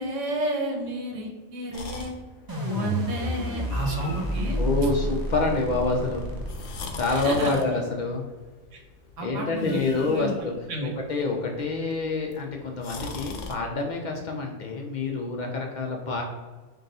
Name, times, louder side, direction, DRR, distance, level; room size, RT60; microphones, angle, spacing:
voice 1, 0.0-2.1 2.6-4.6 7.1-7.6 8.7-8.8 9.2-10.3 10.7-10.9, right 1 dB, 85° right, 1 dB, 1.2 m, -31 dB
sound 1, 1.7-13.6, left 3 dB, 80° left, 0.9 m, -43 dB
sound 2, 2.5-7.5, equal, 25° right, 0.5 m, -30 dB
voice 2, 4.6-6.3 6.9-8.3 9.2-10.5 10.8-16.2, left 3 dB, 65° left, 0 dB, 0.4 m, -27 dB
3.6 x 2.3 x 3.9 m, 1.3 s
omnidirectional pair, 1.2 m